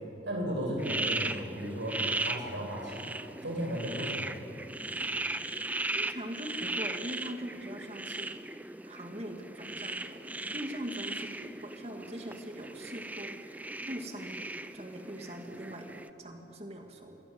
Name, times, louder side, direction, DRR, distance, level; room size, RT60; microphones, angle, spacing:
voice 1, 0.0-3.0 3.4-4.4, equal, 90° right, 0 dB, 7.4 m, -35 dB
sound 1, 0.8-16.1, right 2 dB, 10° right, 0.6 m, -37 dB
voice 2, 5.9-8.3 8.9-10.2 10.5-13.5 13.8-14.4 14.7-17.2, right 1 dB, 35° right, 3 dB, 2.7 m, -42 dB
28.0 x 22.0 x 8.2 m, 3.0 s
head